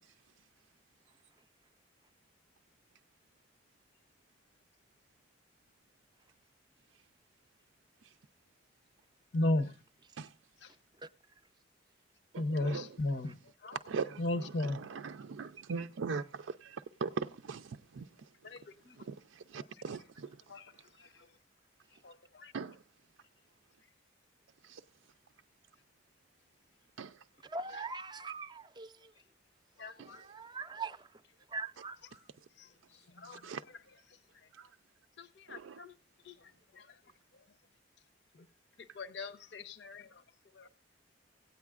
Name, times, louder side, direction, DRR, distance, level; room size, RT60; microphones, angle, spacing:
voice 1, 9.3-9.7 10.6-10.7 12.4-13.4 13.6-13.8 14.2-14.8 18.4-19.0 20.5-20.7 21.0-21.1 22.0-22.5 29.8-30.2 32.6-32.7 33.2-33.4 35.2-35.9 36.3-36.9 38.9-40.1 40.6-40.7, left 1 dB, 65° left, 0.7 m, -36 dB
voice 2, 12.3-13.0 13.7-18.3 19.0-20.4 22.5-22.8 24.6-24.8 27.0-27.2 30.0-30.3 33.2-33.6 34.5-34.7 35.5-35.8, right 5 dB, 90° right, 0.4 m, -41 dB
voice 3, 27.4-29.1 30.0-31.1 31.5-32.0, right 4 dB, 20° right, 0.5 m, -42 dB
17.0 x 9.3 x 2.4 m
head